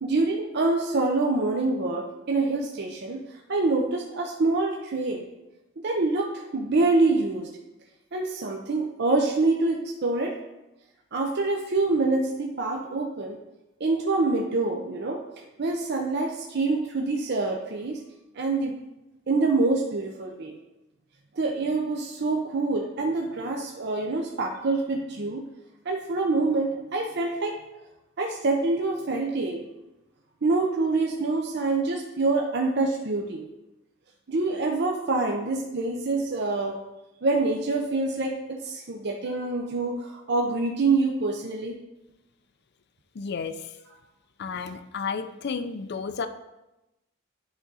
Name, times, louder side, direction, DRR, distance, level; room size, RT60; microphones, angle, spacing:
voice 1, 0.0-5.3 5.8-7.5 8.1-10.4 11.1-13.4 13.8-15.2 15.6-18.0 18.3-18.8 19.3-20.6 21.3-25.5 25.8-27.6 28.2-29.6 30.4-33.5 34.3-36.8 37.2-41.8, right 3 dB, 55° right, 1 dB, 0.6 m, -26 dB
voice 2, 43.2-43.7 44.4-46.3, left 5 dB, 50° left, 10 dB, 0.4 m, -32 dB
11.0 x 3.7 x 4.0 m, 0.97 s
head